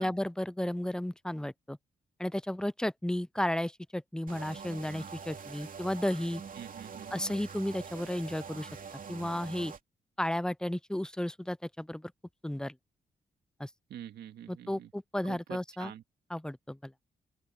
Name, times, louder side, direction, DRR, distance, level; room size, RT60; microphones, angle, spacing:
voice 1, 0.0-1.8 2.2-6.4 7.1-8.7 9.1-9.7 10.2-12.1 12.4-12.7 13.6-13.7 14.5-15.9 16.3-16.9, left 1 dB, 5° left, 0.5 m, -33 dB
sound 1, 4.3-9.8, right 6 dB, 55° right, 2.6 m, -45 dB
voice 2, 6.6-7.1 13.9-14.9 15.2-16.0, right 10 dB, 80° right, 2.3 m, -46 dB
open air
supercardioid pair, 45°, 17 cm